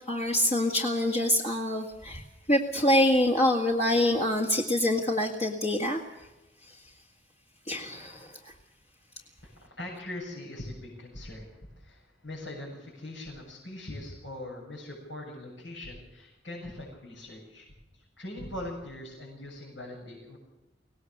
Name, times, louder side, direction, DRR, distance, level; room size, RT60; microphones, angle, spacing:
voice 1, 0.1-2.2 2.5-6.0 7.7-8.3, left 1 dB, 35° left, 0 dB, 1.9 m, -25 dB
voice 2, 9.4-17.7 17.9-20.4, left 1 dB, 80° left, -3 dB, 7.9 m, -41 dB
24.0 x 18.5 x 6.8 m, 0.99 s
head